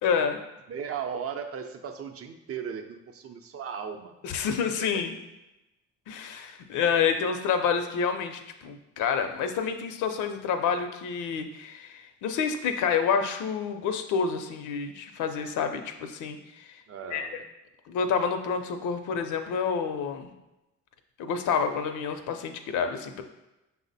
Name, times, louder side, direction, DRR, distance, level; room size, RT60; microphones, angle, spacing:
voice 1, 0.0-0.4 4.2-5.2 6.1-16.7 17.1-17.3 17.9-20.3 21.2-23.2, left 6 dB, 80° left, 7 dB, 0.5 m, -28 dB
voice 2, 0.7-4.1 4.8-5.0 16.9-17.4, right 7 dB, 50° right, 6 dB, 0.5 m, -36 dB
5.8 x 2.0 x 4.0 m, 0.97 s
cardioid pair, 90°, 30 cm